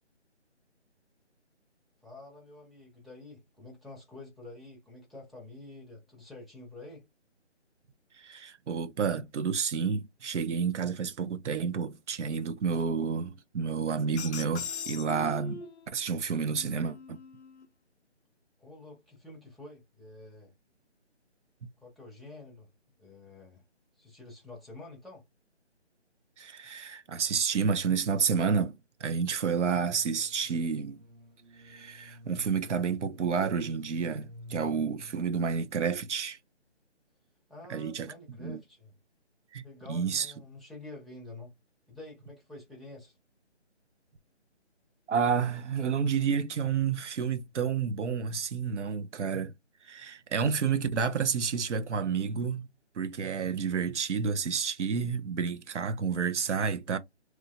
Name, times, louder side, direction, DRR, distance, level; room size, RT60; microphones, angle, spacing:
voice 1, 2.0-7.0 18.6-20.5 21.8-22.7 23.0-23.6 24.0-25.2 37.5-38.9 39.6-41.5 41.9-43.2, left 2 dB, ahead, 0.4 m, -48 dB
voice 2, 8.2-15.6 15.9-17.2 26.4-31.0 31.6-36.4 37.7-38.1 38.4-38.6 39.5-40.3 45.1-49.5 49.8-52.7 53.0-57.0, right 6 dB, 80° right, 0.6 m, -30 dB
sound 1, 14.2-15.9 16.5-17.7, left 6 dB, 70° left, 0.5 m, -41 dB
sound 2, 29.6-35.5, left 1 dB, 35° right, 0.7 m, -51 dB
3.0 x 2.3 x 2.3 m
figure-of-eight pair, 160°, 35 cm